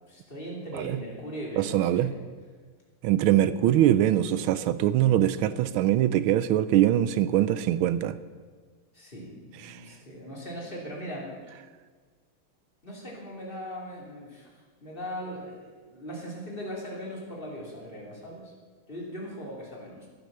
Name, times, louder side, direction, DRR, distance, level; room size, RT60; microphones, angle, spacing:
voice 1, 0.1-2.1 8.9-11.3 12.8-14.5 14.8-18.5 18.9-20.1, equal, 25° left, -3 dB, 3.2 m, -39 dB
voice 2, 1.6-2.1 3.0-8.1 9.6-9.8, right 12 dB, 80° right, 15 dB, 1.4 m, -23 dB
13.0 x 10.5 x 6.7 m, 1.5 s
omnidirectional pair, 2.3 m